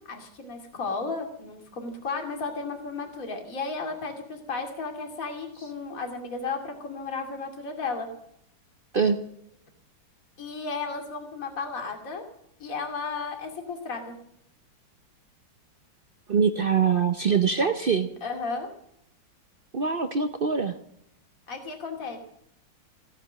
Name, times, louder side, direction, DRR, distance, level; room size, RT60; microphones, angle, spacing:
voice 1, 0.1-8.1 10.4-12.2 12.6-14.1 18.2-18.7 21.5-22.2, left 4 dB, 40° left, 4 dB, 2.9 m, -34 dB
voice 2, 16.3-18.1 19.7-20.7, right 6 dB, 80° right, 8 dB, 0.4 m, -23 dB
17.0 x 10.0 x 7.5 m, 0.73 s
omnidirectional pair, 2.2 m